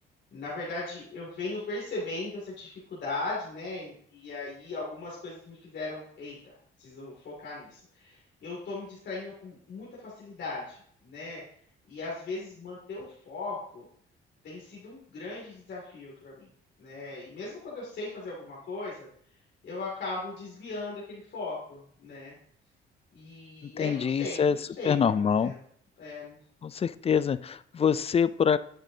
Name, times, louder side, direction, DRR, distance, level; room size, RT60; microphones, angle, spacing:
voice 1, 0.3-11.4 11.9-13.8 14.4-16.5 16.8-19.1 19.6-22.4 23.1-25.0 25.4-25.6 26.0-26.4, left 3 dB, 65° left, -5 dB, 2.5 m, -38 dB
voice 2, 23.6-24.6 24.8-25.5 26.6-28.6, left 7 dB, 30° left, 16 dB, 0.3 m, -25 dB
9.2 x 7.2 x 2.8 m, 0.63 s
cardioid pair, 90°, 20 cm